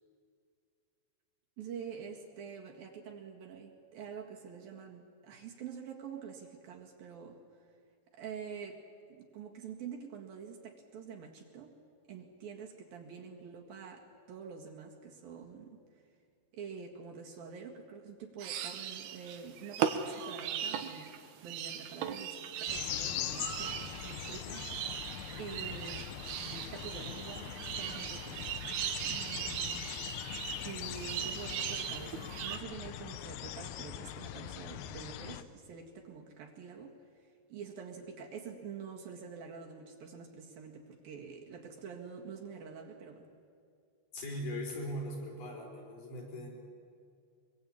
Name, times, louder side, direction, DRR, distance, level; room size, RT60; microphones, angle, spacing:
voice 1, 1.6-7.4 8.1-8.8 9.1-11.8 12.1-15.8 16.5-21.1 21.4-25.1 25.4-26.1 26.4-28.4 29.0-29.9 30.6-37.0 37.5-43.3, right 6 dB, 65° right, 1 dB, 3.6 m, -46 dB
sound 1, 18.4-32.6, right 9 dB, 80° right, 3.2 m, -39 dB
sound 2, 22.7-35.4, left 12 dB, 75° left, 2.5 m, -42 dB
voice 2, 44.1-46.5, equal, 55° left, -1 dB, 7.1 m, -39 dB
24.5 x 22.5 x 8.6 m, 2.3 s
omnidirectional pair, 4.7 m